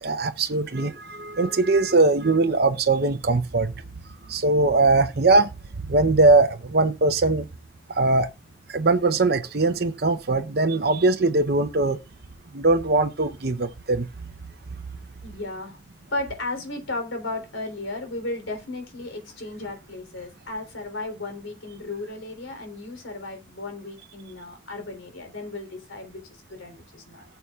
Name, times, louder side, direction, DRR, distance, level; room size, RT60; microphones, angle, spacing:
voice 1, 0.0-3.7 4.3-5.5 5.9-7.5 7.9-8.3 8.7-12.0 12.5-14.1, right 3 dB, 50° right, 0.7 m, -21 dB
voice 2, 15.2-15.8 16.1-27.2, left 2 dB, 85° left, 3.5 m, -35 dB
18.5 x 6.9 x 2.4 m
head